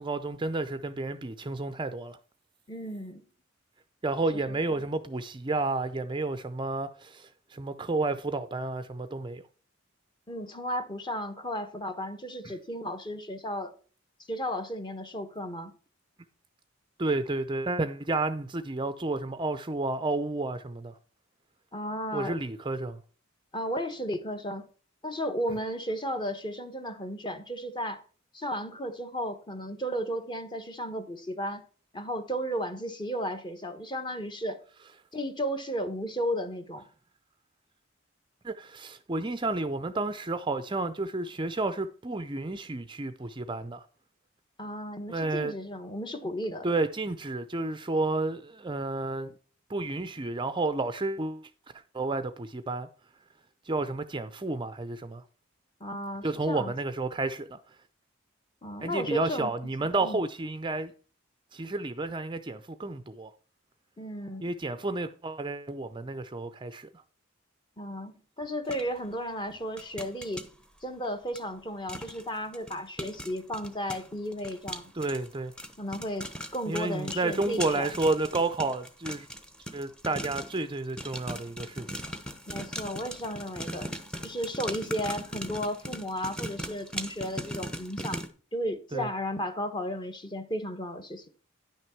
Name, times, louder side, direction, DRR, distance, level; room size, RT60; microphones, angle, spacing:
voice 1, 0.0-2.2 4.0-9.4 12.4-12.5 17.0-20.9 22.1-23.0 38.4-43.8 45.1-45.5 46.6-49.3 49.7-51.5 51.9-52.9 53.7-55.2 56.2-57.6 58.8-60.9 61.5-63.3 64.4-66.9 74.9-75.5 76.7-79.3 79.7-82.1 88.9-89.1, right 2 dB, 25° right, 0.5 m, -31 dB
voice 2, 2.7-3.2 4.3-4.9 10.3-13.7 14.3-15.7 21.7-22.4 23.5-24.7 25.0-28.0 28.3-31.6 31.9-34.6 35.1-36.9 44.6-46.7 55.8-56.7 58.6-59.5 59.8-60.2 64.0-64.4 67.8-70.5 70.8-74.9 75.8-77.9 82.5-83.9 84.2-88.2 88.5-91.2, equal, 20° left, 1.2 m, -34 dB
sound 1, 68.7-68.8 69.8-70.5 71.3-71.4 71.9-72.2 72.5-80.6 81.0-88.3, equal, 5° left, 1.0 m, -38 dB
10.5 x 6.2 x 4.5 m
head